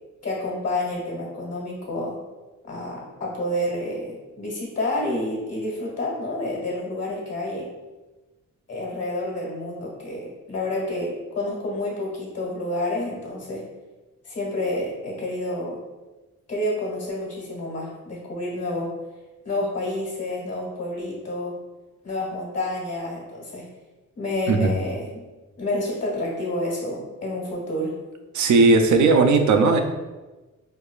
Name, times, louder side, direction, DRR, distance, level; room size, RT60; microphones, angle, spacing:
voice 1, 0.2-2.2 2.7-7.7 8.7-13.7 14.2-15.8 16.5-19.0 19.4-21.6 22.0-23.7 24.2-25.2 25.6-28.0, left 1 dB, 55° left, -3 dB, 1.3 m, -29 dB
voice 2, 28.3-29.8, right 3 dB, 70° right, 5 dB, 0.5 m, -17 dB
4.6 x 2.3 x 2.3 m, 1.2 s
cardioid pair, 95°, 30 cm